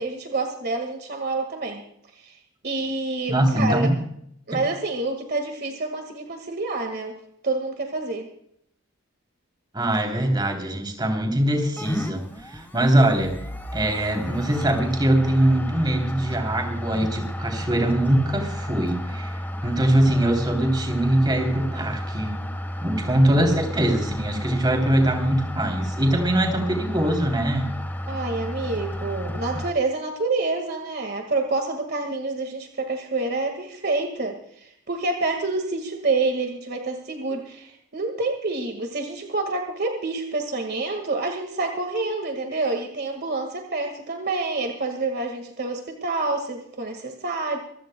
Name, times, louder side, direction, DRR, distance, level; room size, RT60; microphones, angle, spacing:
voice 1, 0.0-1.8 2.2-2.4 2.6-3.9 4.5-7.2 7.4-8.3 28.1-47.6, right 3 dB, 50° right, 4 dB, 1.9 m, -27 dB
voice 2, 3.3-4.0 4.5-4.6 9.7-13.3 13.7-19.4 19.6-22.3 22.8-27.7, right 1 dB, 20° right, 3 dB, 3.3 m, -22 dB
sound 1, 11.8-29.7, equal, 10° left, 1.3 m, -32 dB
25.5 x 15.5 x 2.3 m, 0.71 s
head